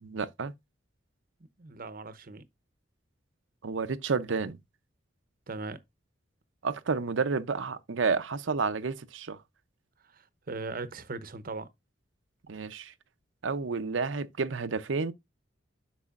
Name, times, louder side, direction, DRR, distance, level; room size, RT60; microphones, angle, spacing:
voice 1, 0.0-0.5 3.6-4.6 6.6-9.4 12.5-12.9 13.4-15.1, right 4 dB, 80° right, 0.6 m, -30 dB
voice 2, 1.6-2.4 5.5-5.8 10.1-11.7, right 3 dB, 50° right, 0.8 m, -39 dB
8.3 x 6.1 x 2.4 m
head